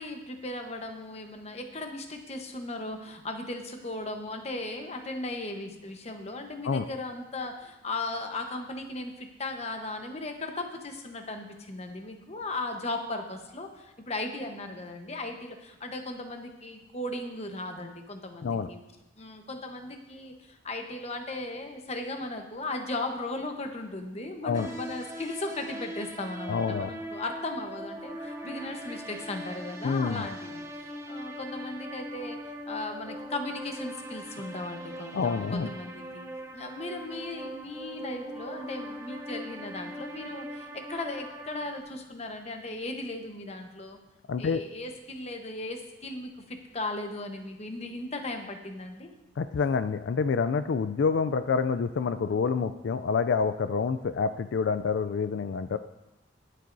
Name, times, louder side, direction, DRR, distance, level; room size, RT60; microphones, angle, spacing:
voice 1, 0.0-18.8 19.2-30.6 31.1-32.4 32.7-36.3 36.5-44.0 44.4-49.1, left 2 dB, 35° left, 4 dB, 1.0 m, -37 dB
sound 1, 24.5-41.8, equal, 15° right, 0.8 m, -41 dB
voice 2, 26.5-26.9 29.8-30.3 35.1-35.7 44.3-44.6 49.4-55.8, left 5 dB, 75° left, 11 dB, 0.4 m, -27 dB
21.5 x 7.6 x 2.7 m, 0.99 s
head